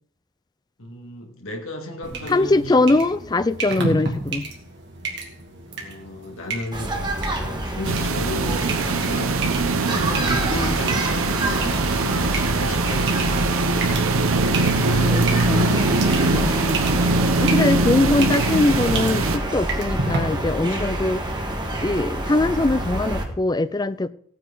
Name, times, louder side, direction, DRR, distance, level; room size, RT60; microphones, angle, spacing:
voice 1, 0.8-2.8 5.7-13.7 14.4-16.4 20.4-21.0 23.2-23.4, left 1 dB, 75° left, 2.1 m, -35 dB
sound 1, 2.0-20.2, right 3 dB, 55° right, 2.4 m, -33 dB
voice 2, 2.3-4.5 10.5-10.8 14.9-15.9 16.3-16.9 17.4-21.4 21.8-24.1, left 2 dB, 20° left, 0.4 m, -22 dB
sound 2, 6.7-23.3, right 1 dB, 20° right, 1.5 m, -27 dB
sound 3, 7.8-19.4, right 3 dB, 80° right, 0.8 m, -22 dB
16.5 x 9.2 x 3.9 m
head